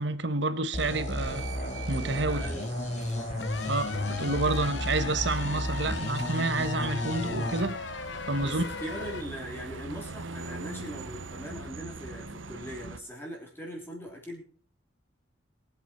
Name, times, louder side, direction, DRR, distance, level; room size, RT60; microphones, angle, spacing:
voice 1, 0.0-1.5 1.9-2.4 3.7-7.8 8.3-8.6, right 2 dB, 65° right, 1.3 m, -29 dB
sound 1, 0.7-7.6, left 1 dB, 35° left, 2.4 m, -33 dB
sound 2, 1.2-13.0, right 3 dB, 85° right, 1.0 m, -42 dB
voice 2, 2.2-2.7 3.1-3.4 3.6-3.8 4.4-4.7 8.4-14.4, equal, 10° left, 3.3 m, -41 dB
sound 3, 3.4-9.2, left 5 dB, 70° left, 0.9 m, -38 dB
23.0 x 8.2 x 4.5 m
head